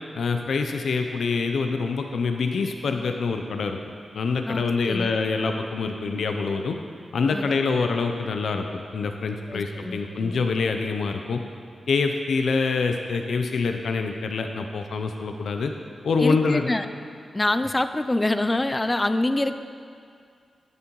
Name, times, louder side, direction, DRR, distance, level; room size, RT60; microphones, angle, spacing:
voice 1, 0.1-3.8 4.1-6.8 7.1-8.7 8.9-11.4 11.9-15.7 16.0-16.7, left 4 dB, 80° left, 5 dB, 0.5 m, -25 dB
voice 2, 4.5-5.1 7.3-7.4 9.5-10.4 16.2-16.9 17.3-19.6, left 2 dB, 20° left, 11 dB, 0.4 m, -25 dB
10.0 x 8.2 x 3.0 m, 2.3 s
cardioid pair, 70°, 0 cm